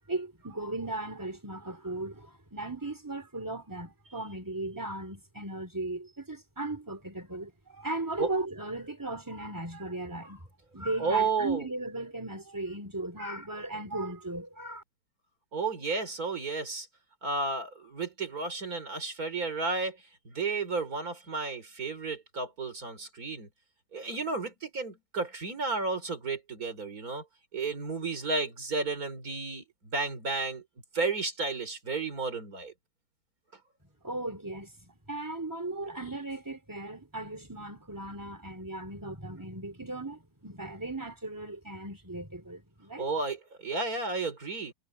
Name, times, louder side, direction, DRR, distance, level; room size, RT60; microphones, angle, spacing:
voice 1, 0.1-10.4 10.7-14.8 34.0-43.1, right 2 dB, 10° right, 3.5 m, -37 dB
voice 2, 11.0-11.6 15.5-16.9 17.2-20.0 20.2-23.5 23.9-27.2 27.5-30.6 30.9-32.7 43.0-44.7, right 4 dB, 50° right, 4.2 m, -32 dB
omnidirectional pair, 2.0 m